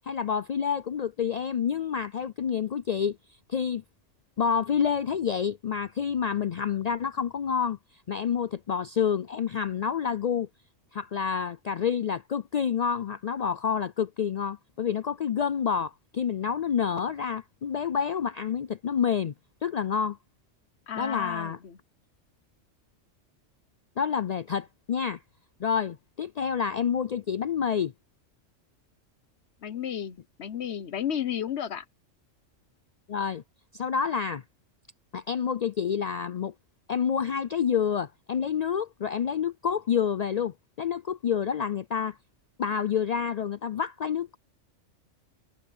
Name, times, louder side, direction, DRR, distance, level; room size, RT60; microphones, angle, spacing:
voice 1, 0.1-3.2 3.5-3.8 4.4-7.8 8.1-10.5 10.9-19.3 19.6-20.2 21.0-21.6 24.0-25.2 25.6-27.9 33.1-33.4 33.7-34.4 35.1-36.5 36.9-42.2 42.6-44.4, left 7 dB, 80° left, 0.3 m, -28 dB
voice 2, 20.9-21.8 29.6-31.9, left 9 dB, 60° left, 1.1 m, -33 dB
omnidirectional pair, 1.3 m